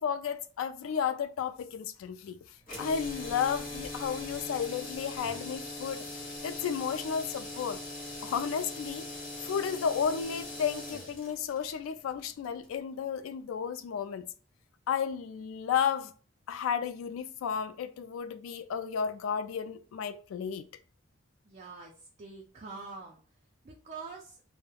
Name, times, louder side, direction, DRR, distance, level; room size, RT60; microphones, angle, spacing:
voice 1, 0.0-2.4 2.8-6.1 6.4-7.8 8.2-9.1 9.4-14.3 14.9-16.1 16.5-20.7, left 7 dB, 85° left, 0.3 m, -33 dB
sound 1, 2.6-12.8, left 2 dB, 45° left, 0.8 m, -41 dB
voice 2, 21.5-21.9 22.2-23.2 23.6-24.4, right 4 dB, 35° right, 0.4 m, -44 dB
2.2 x 2.1 x 3.1 m
head